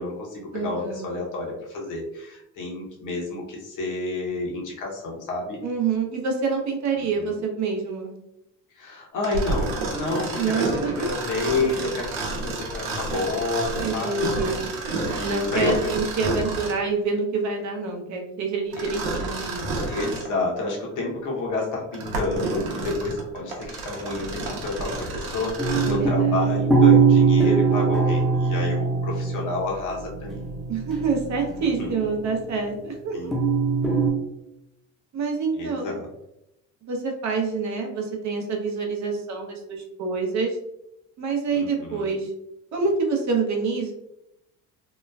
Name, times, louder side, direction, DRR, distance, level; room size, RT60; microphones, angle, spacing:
voice 1, 0.0-5.6 7.0-7.3 8.7-14.2 15.1-15.7 18.8-18.9 19.9-30.4 31.8-31.9 33.1-33.4 35.6-36.1 41.5-42.1, left 2 dB, 50° left, -2 dB, 1.0 m, -30 dB
voice 2, 0.5-1.1 5.6-8.1 10.4-11.1 13.8-14.6 15.2-19.8 25.8-26.5 30.7-33.3 35.1-35.9 36.9-40.6 41.2-42.3 42.7-43.9, right 4 dB, 45° right, 1 dB, 0.7 m, -27 dB
Mechanisms, 9.2-16.9 18.7-20.3 20.9-21.0 21.7-26.1, right 2 dB, 75° right, 0.8 m, -30 dB
sound 1, 25.6-29.7 29.9-32.2 33.3-34.1, right 5 dB, ahead, 0.7 m, -21 dB
3.0 x 2.2 x 2.2 m, 0.85 s
supercardioid pair, 75°, 39 cm